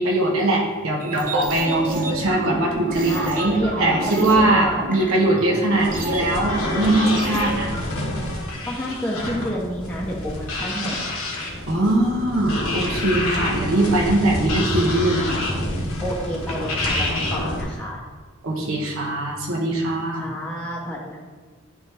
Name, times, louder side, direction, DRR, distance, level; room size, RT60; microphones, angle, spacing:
voice 1, 0.0-7.7 11.7-15.3 18.4-20.3, right 1 dB, 70° right, -2 dB, 1.2 m, -21 dB
sound 1, 1.0-7.8, right 2 dB, 40° right, 0.9 m, -29 dB
voice 2, 2.9-5.1 6.6-6.8 8.7-11.0 16.0-18.0 20.1-21.2, equal, 5° left, -5 dB, 0.8 m, -30 dB
sound 2, 5.7-17.6, left 1 dB, 90° left, 1.6 m, -27 dB
10.5 x 3.7 x 3.4 m, 1.5 s
head